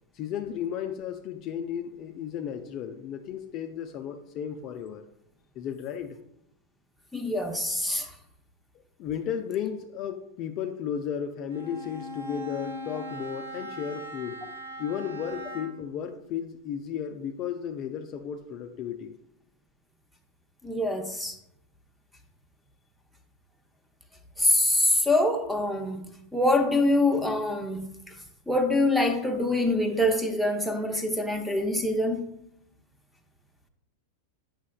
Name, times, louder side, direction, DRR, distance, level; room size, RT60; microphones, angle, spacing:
voice 1, 0.1-5.1 5.6-6.2 9.0-14.4 14.8-19.2, left 8 dB, 35° left, 0.4 m, -34 dB
voice 2, 7.1-8.1 20.6-21.4 24.4-26.0 26.3-27.8 28.5-32.3, left 1 dB, ahead, 0.7 m, -25 dB
Bowed string instrument, 11.5-15.9, equal, 85° right, 1.3 m, -39 dB
8.2 x 5.7 x 2.2 m
figure-of-eight pair, 90°, 0 cm